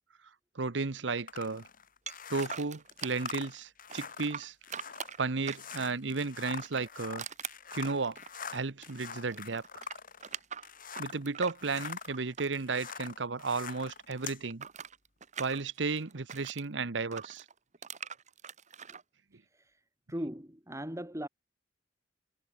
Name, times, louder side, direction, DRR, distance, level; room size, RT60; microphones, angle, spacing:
voice 1, 0.5-1.7 2.3-4.5 5.2-7.2 7.7-8.2 8.5-9.8 11.0-14.6 15.4-17.4, right 4 dB, 70° right, 1.0 m, -34 dB
sound 1, 1.3-11.3 11.5-14.4, left 6 dB, 50° left, 7.9 m, -44 dB
sound 2, 2.1-3.5 3.9-6.0 6.5-9.0 9.3-13.5 13.7-16.7 17.1-19.0, right 7 dB, 40° right, 1.6 m, -43 dB
voice 2, 20.1-21.3, equal, 15° right, 6.0 m, -38 dB
head